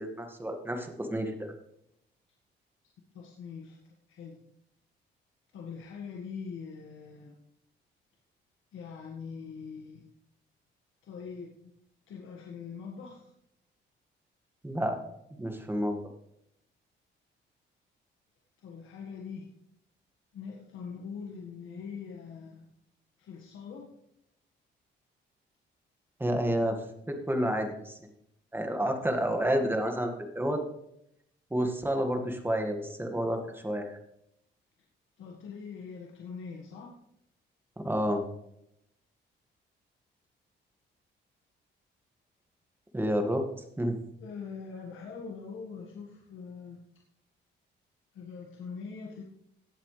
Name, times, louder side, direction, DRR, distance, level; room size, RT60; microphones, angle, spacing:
voice 1, 0.0-1.5 14.6-15.0 15.4-16.0 26.2-26.8 27.1-28.0 28.5-30.6 31.5-33.9 37.8-38.2 42.9-43.4 43.8-44.0, equal, 10° right, 4 dB, 2.0 m, -29 dB
voice 2, 3.1-3.8 4.1-4.4 5.5-7.3 8.7-10.1 11.0-11.7 12.1-13.3 18.6-19.5 20.3-22.6 23.2-23.9 35.2-36.9 44.2-46.8 48.1-49.2, left 5 dB, 80° left, -2 dB, 1.8 m, -42 dB
17.5 x 7.4 x 3.4 m, 0.77 s
cardioid pair, 90°, 20 cm